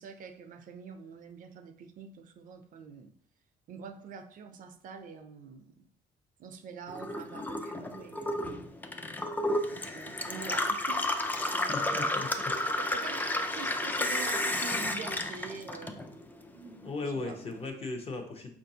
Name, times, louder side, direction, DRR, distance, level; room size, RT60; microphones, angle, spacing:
voice 1, 0.0-3.1 3.7-5.9 6.4-8.5 9.7-11.1 11.4-12.2 12.8-16.0 16.5-17.4, right 6 dB, 55° right, 7 dB, 0.4 m, -45 dB
Gurgling / Water tap faucet / Sink (filling or washing), 6.9-16.4 16.7-17.6, left 1 dB, 10° left, 0.3 m, -32 dB
voice 2, 11.7-12.6 16.8-18.5, left 3 dB, 35° left, 3 dB, 0.7 m, -37 dB
4.7 x 2.5 x 2.7 m, 0.63 s
cardioid pair, 110°, 17 cm